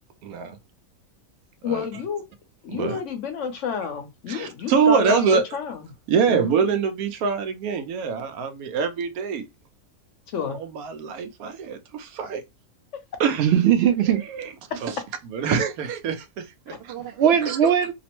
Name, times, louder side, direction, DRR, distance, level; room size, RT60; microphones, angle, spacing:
voice 1, 0.2-0.6 1.6-1.9 2.7-3.0 4.3-5.5 6.1-9.5 10.4-12.4 13.2-13.5 14.3-14.5 14.8-15.0 15.3-16.9 17.5-17.6, right 6 dB, 90° right, 1.1 m, -24 dB
voice 2, 1.6-2.2 2.6-5.8 6.3-6.7 10.3-10.6 12.9-13.0 16.7-16.8 17.2-17.3, left 7 dB, 65° left, 1.0 m, -30 dB
voice 3, 13.4-14.2 16.9-17.9, right 9 dB, 65° right, 0.6 m, -20 dB
3.0 x 2.0 x 2.9 m
omnidirectional pair, 1.5 m